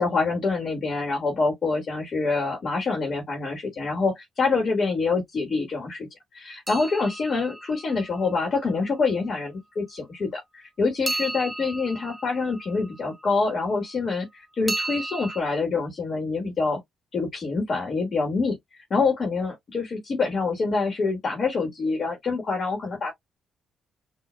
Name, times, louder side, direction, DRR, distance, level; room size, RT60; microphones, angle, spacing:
voice 1, 0.0-6.1 6.3-16.8 17.1-18.6 18.9-23.1, left 4 dB, 45° left, 1.4 m, -26 dB
sound 1, 6.7-8.7 11.1-13.4 14.7-15.4, right 2 dB, 20° right, 0.7 m, -34 dB
4.9 x 2.5 x 2.2 m
cardioid pair, 90°, 0 cm